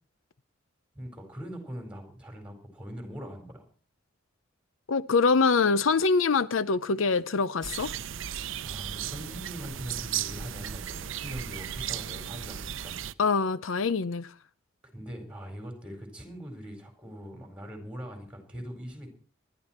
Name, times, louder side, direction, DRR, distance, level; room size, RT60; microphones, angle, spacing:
voice 1, 0.9-3.6 8.3-13.0 14.8-19.1, equal, 5° right, 4.4 m, -42 dB
voice 2, 4.9-7.9 13.2-14.3, left 4 dB, 80° left, 0.6 m, -24 dB
sound 1, 7.6-13.1, right 9 dB, 75° right, 0.6 m, -35 dB
20.0 x 13.0 x 4.4 m
head